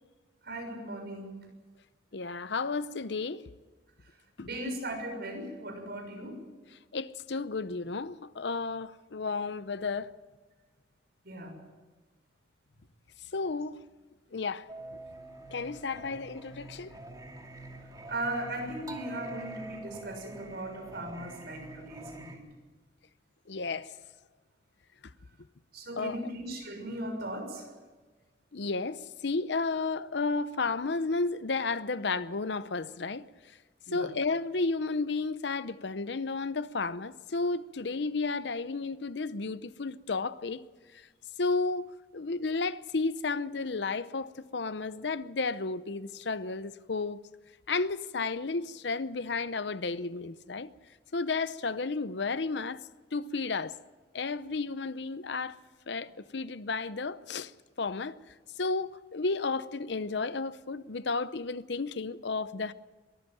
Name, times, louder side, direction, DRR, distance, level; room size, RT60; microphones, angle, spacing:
voice 1, 0.4-1.5 4.4-6.4 11.2-11.6 18.1-22.4 25.7-27.7 33.9-34.1, right 1 dB, 55° right, 6.5 m, -38 dB
voice 2, 2.1-3.4 4.4-4.5 6.9-10.1 13.3-13.8 14.3-14.7 15.5-16.9 23.5-23.9 25.9-26.3 28.5-33.2 33.9-40.6 41.4-47.2 47.7-50.7 51.1-52.8 53.1-53.7 54.1-55.6 55.9-57.5 57.8-58.2 58.6-62.7, left 3 dB, 65° left, 0.7 m, -32 dB
Singing, 14.7-22.4, right 2 dB, 20° right, 2.4 m, -46 dB
22.5 x 14.5 x 9.3 m
head